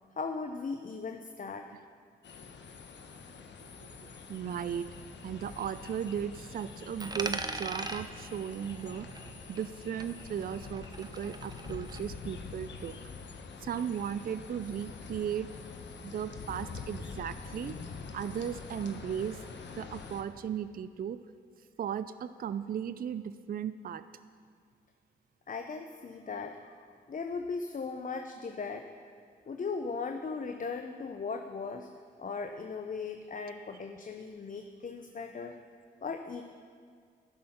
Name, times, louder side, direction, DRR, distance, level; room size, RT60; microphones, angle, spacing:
voice 1, 0.2-1.7 25.5-26.7 27.1-28.9 29.5-31.9 32.2-35.5 36.0-36.4, left 4 dB, 40° left, 5 dB, 0.8 m, -38 dB
sound 1, 2.2-20.2, left 5 dB, 60° left, 1.1 m, -45 dB
voice 2, 4.3-4.9 5.2-12.9 13.6-15.5 16.0-17.8 18.1-19.4 19.8-21.2 21.8-24.0, right 8 dB, 45° right, 13 dB, 0.4 m, -36 dB
Coin (dropping), 7.0-9.8 10.0-12.0, right 2 dB, 20° right, 0.9 m, -40 dB
15.0 x 6.4 x 5.7 m, 2.1 s
hypercardioid pair, 40°, 20 cm